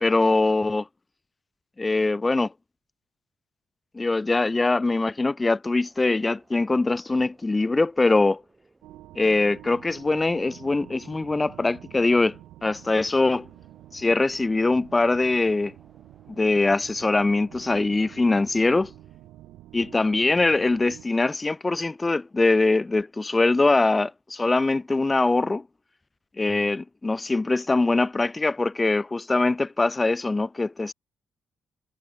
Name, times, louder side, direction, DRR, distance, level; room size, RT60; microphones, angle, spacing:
voice 1, 0.0-0.9 1.8-2.5 3.9-8.4 9.2-13.5 13.9-15.7 16.4-18.9 19.7-25.6 26.4-30.9, left 3 dB, 20° left, 0.3 m, -22 dB
sound 1, 5.8-21.2, right 3 dB, 20° right, 7.6 m, -62 dB
sound 2, 8.8-21.0, right 15 dB, 90° right, 1.1 m, -47 dB
cardioid pair, 90°, 0 cm